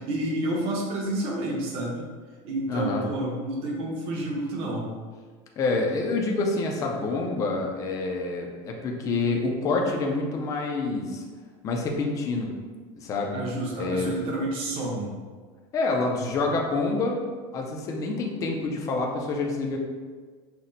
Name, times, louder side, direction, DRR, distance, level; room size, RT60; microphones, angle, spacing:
voice 1, 0.0-2.1 2.4-4.9 13.3-15.1, right 1 dB, 45° right, -2 dB, 0.7 m, -29 dB
voice 2, 2.7-3.0 5.6-11.2 11.6-12.5 13.0-13.4 13.8-14.1 15.7-17.2 17.5-19.8, left 3 dB, 25° left, 1 dB, 0.4 m, -27 dB
5.7 x 2.1 x 2.6 m, 1.5 s
cardioid pair, 175°, 14 cm